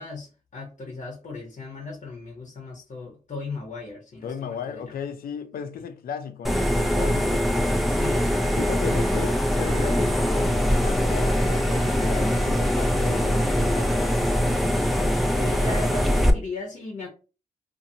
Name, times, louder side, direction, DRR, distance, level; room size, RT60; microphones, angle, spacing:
voice 1, 0.0-4.9 5.7-5.8 7.8-8.4 15.4-17.1, left 3 dB, 55° left, 0.8 m, -36 dB
voice 2, 4.2-7.5 8.6-14.1, left 7 dB, 90° left, 0.4 m, -35 dB
sound 1, 6.4-16.3, equal, ahead, 0.5 m, -22 dB
2.6 x 2.6 x 2.7 m
cardioid pair, 80°, 15 cm